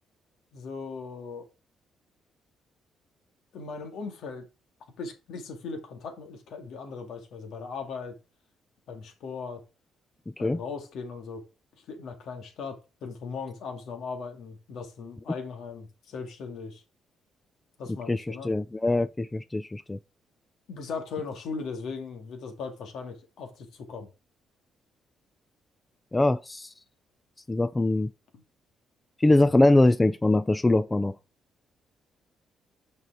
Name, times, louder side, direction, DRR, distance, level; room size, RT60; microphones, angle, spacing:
voice 1, 0.5-1.4 3.5-4.5 5.0-8.1 8.9-9.6 10.4-11.4 11.8-16.8 17.8-18.5 20.7-24.1, left 5 dB, 75° left, 2.2 m, -38 dB
voice 2, 18.1-20.0 26.1-26.7 27.5-28.1 29.2-31.2, left 2 dB, 15° left, 0.4 m, -23 dB
6.6 x 5.4 x 4.8 m
cardioid pair, 90°, 0 cm